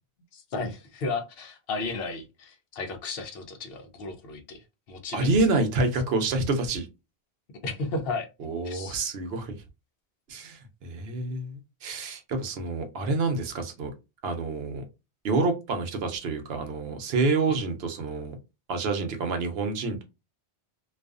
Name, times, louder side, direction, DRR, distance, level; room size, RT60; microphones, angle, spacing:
voice 1, 0.3-5.3 7.6-8.3 8.6-9.0 17.5-17.6, left 3 dB, 65° left, 5 dB, 0.8 m, -34 dB
voice 2, 5.1-6.9 8.4-9.6 10.3-13.9 14.2-14.8 15.2-18.4 18.7-20.0, right 3 dB, 70° right, 5 dB, 0.8 m, -28 dB
2.4 x 2.3 x 2.3 m, 0.26 s
omnidirectional pair, 1.1 m